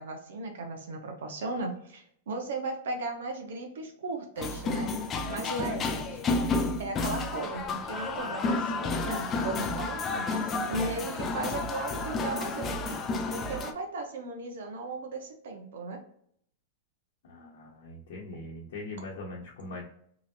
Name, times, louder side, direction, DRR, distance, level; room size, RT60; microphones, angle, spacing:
voice 1, 0.0-4.9 5.3-6.2 6.8-10.2 10.7-13.0 13.3-16.0, right 3 dB, 85° right, 4 dB, 0.8 m, -36 dB
sound 1, 4.4-13.7, left 3 dB, 20° left, 0.3 m, -31 dB
voice 2, 17.2-19.8, left 2 dB, 70° left, -5 dB, 0.8 m, -41 dB
3.0 x 2.5 x 2.6 m, 0.66 s
supercardioid pair, 160°, 0 cm